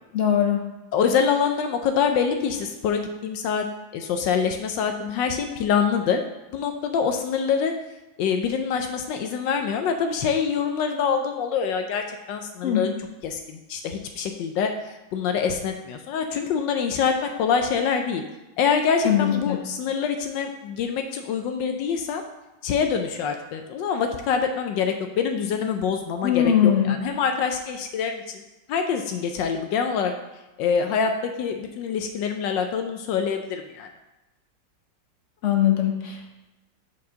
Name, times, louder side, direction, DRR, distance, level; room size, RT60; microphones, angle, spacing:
voice 1, 0.1-0.7 12.6-12.8 19.0-19.6 26.2-27.0 35.4-36.3, left 10 dB, 60° left, 2 dB, 0.8 m, -21 dB
voice 2, 0.9-3.6 3.9-6.2 6.5-7.7 8.2-12.9 13.2-17.1 17.4-18.2 18.6-22.2 22.6-28.4 28.7-30.1 30.6-33.9, left 6 dB, 80° left, 5 dB, 1.2 m, -25 dB
5.5 x 4.7 x 6.2 m, 1.0 s
omnidirectional pair, 2.0 m